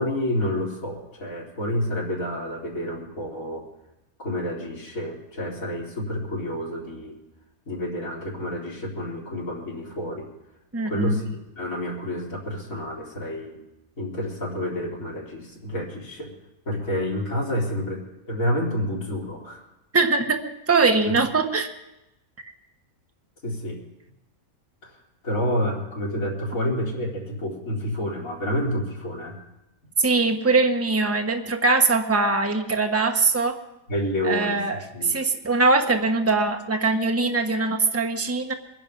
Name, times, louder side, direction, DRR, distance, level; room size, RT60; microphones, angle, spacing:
voice 1, 0.0-3.6 4.2-7.2 7.7-10.3 10.8-13.6 14.0-16.3 16.7-19.6 21.0-21.1 23.4-23.8 25.2-29.4 33.9-35.2, left 1 dB, 65° left, -3 dB, 4.3 m, -29 dB
voice 2, 10.7-11.2 19.9-21.7 30.0-33.6 34.3-38.5, right 3 dB, 10° right, 5 dB, 1.1 m, -22 dB
23.0 x 10.5 x 5.3 m, 0.91 s
omnidirectional pair, 1.6 m